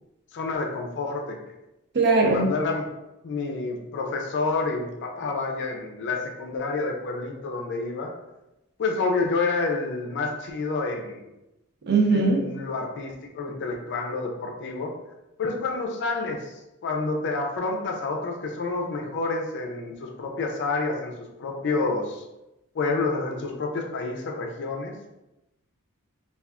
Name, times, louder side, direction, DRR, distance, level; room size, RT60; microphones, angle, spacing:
voice 1, 0.3-1.4 2.3-2.9 3.2-8.1 8.8-11.3 12.1-14.9 15.4-16.4 16.8-22.2 22.7-25.0, left 3 dB, 55° left, 2 dB, 0.4 m, -29 dB
voice 2, 1.9-2.5 11.9-12.4, right 3 dB, 50° right, 0 dB, 0.5 m, -20 dB
2.3 x 2.3 x 3.5 m, 0.94 s
head